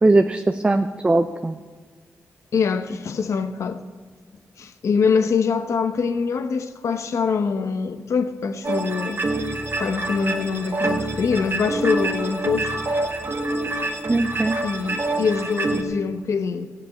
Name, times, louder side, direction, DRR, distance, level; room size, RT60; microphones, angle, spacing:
voice 1, 0.0-1.5 14.1-14.6, right 2 dB, 20° right, 0.5 m, -19 dB
voice 2, 2.5-3.8 4.6-9.2 9.8-12.7 14.6-16.7, left 5 dB, 75° left, 0.9 m, -24 dB
sound 1, 8.6-15.8, right 2 dB, 45° right, 1.4 m, -26 dB
14.5 x 7.5 x 8.4 m
cardioid pair, 90°, 5 cm